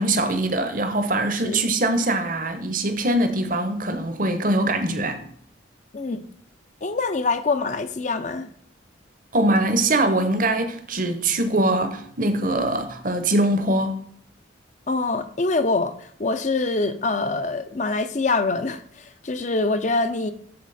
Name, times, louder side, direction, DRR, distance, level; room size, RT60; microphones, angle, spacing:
voice 1, 0.0-5.2 9.3-14.0, right 1 dB, 45° right, 0.9 m, -22 dB
voice 2, 6.8-8.5 14.9-20.3, left 3 dB, 35° left, 0.6 m, -25 dB
12.5 x 4.2 x 4.1 m
head